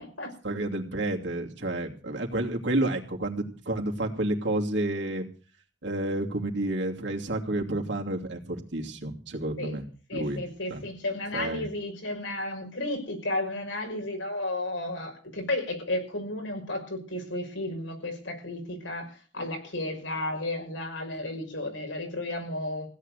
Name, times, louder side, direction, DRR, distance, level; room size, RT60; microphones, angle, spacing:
voice 1, 0.4-5.2 5.8-9.8 10.1-10.4 10.7-10.8 11.3-11.6, right 1 dB, 65° right, 1 dB, 2.8 m, -30 dB
voice 2, 10.1-22.9, left 1 dB, 90° left, 3 dB, 5.8 m, -33 dB
16.5 x 9.7 x 6.7 m, 0.39 s
head